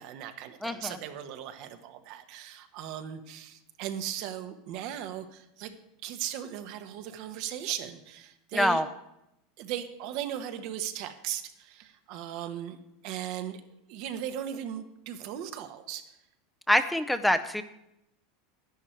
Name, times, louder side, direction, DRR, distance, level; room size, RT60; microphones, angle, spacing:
voice 1, 0.0-5.7 6.0-8.8 9.6-12.8 13.0-13.6 13.9-16.0, right 10 dB, 60° right, 8 dB, 1.2 m, -37 dB
voice 2, 0.6-1.0 8.5-8.8 16.7-17.6, left 1 dB, 5° left, 9 dB, 0.7 m, -25 dB
10.5 x 10.5 x 4.5 m, 0.86 s
hypercardioid pair, 100°, 0 cm